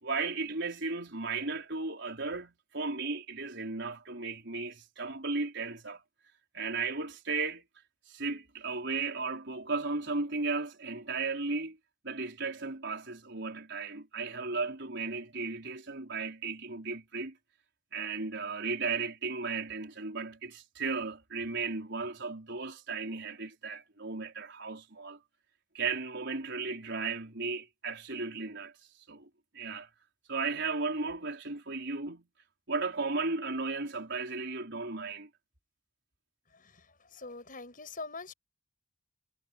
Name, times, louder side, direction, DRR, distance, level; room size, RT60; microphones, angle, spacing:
voice 1, 0.0-6.0 6.5-7.6 8.1-11.8 12.0-17.4 17.9-25.2 25.7-28.7 29.1-29.3 29.5-29.9 30.3-32.3 32.7-35.3, right 4 dB, 60° right, 4.8 m, -35 dB
voice 2, 37.2-38.3, left 3 dB, 45° left, 6.2 m, -42 dB
head